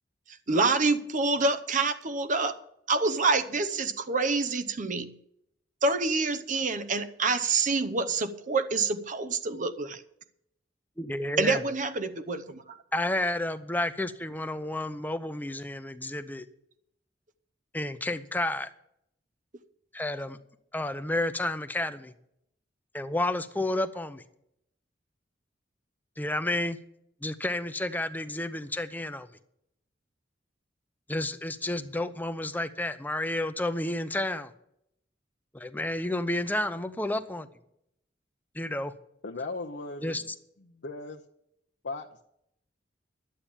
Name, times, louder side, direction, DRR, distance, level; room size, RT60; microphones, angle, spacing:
voice 1, 0.5-2.6 2.9-5.1 5.8-10.0 11.4-12.8, right 3 dB, 45° right, 0.8 m, -27 dB
voice 2, 11.0-11.6 12.9-16.4 17.7-18.7 19.9-20.4 20.7-22.1 22.9-24.2 26.2-26.8 27.2-29.3 31.1-34.5 35.5-37.5 38.5-38.9 40.0-40.2, left 1 dB, 10° left, 0.7 m, -31 dB
voice 3, 39.2-40.2 40.8-41.2 41.8-42.3, left 3 dB, 75° left, 0.8 m, -37 dB
11.5 x 8.7 x 7.1 m
head